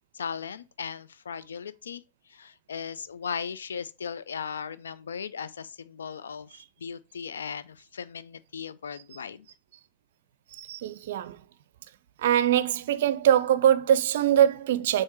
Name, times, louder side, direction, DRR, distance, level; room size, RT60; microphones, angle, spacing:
voice 1, 0.1-2.0 2.3-9.5, left 6 dB, 70° left, 0.4 m, -37 dB
voice 2, 10.5-11.4 12.2-15.0, right 10 dB, 55° right, 0.5 m, -23 dB
6.3 x 3.8 x 4.5 m
figure-of-eight pair, 90°, 0 cm